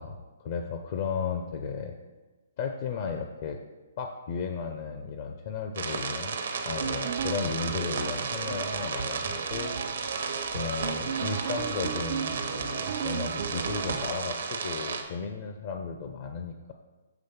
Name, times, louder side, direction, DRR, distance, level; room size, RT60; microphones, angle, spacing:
voice 1, 0.0-1.9 2.6-3.6 4.0-6.4 6.6-9.8 10.5-16.7, left 5 dB, 45° left, 4 dB, 0.5 m, -34 dB
sound 1, 5.8-15.0, right 5 dB, 70° right, 0.9 m, -33 dB
sound 2, 6.7-14.1, right 8 dB, 50° right, 0.4 m, -36 dB
7.0 x 3.2 x 5.7 m, 1.2 s
hypercardioid pair, 150°, 0 cm